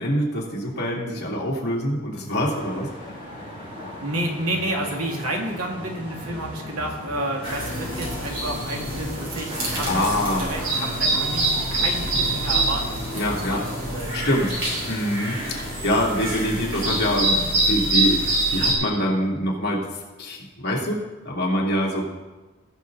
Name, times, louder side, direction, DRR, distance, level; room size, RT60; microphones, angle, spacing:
voice 1, 0.0-2.9 9.8-10.5 13.1-13.7 14.1-14.6 14.9-22.0, equal, 50° left, -4 dB, 2.6 m, -25 dB
sound 1, 2.4-17.3, left 1 dB, 25° right, 3.6 m, -39 dB
voice 2, 4.0-13.0 13.5-13.7 13.9-14.3, right 1 dB, 80° right, 1 dB, 2.0 m, -30 dB
sound 2, 7.4-18.7, right 2 dB, 60° right, 3.8 m, -25 dB
19.0 x 6.5 x 3.9 m, 1.2 s
head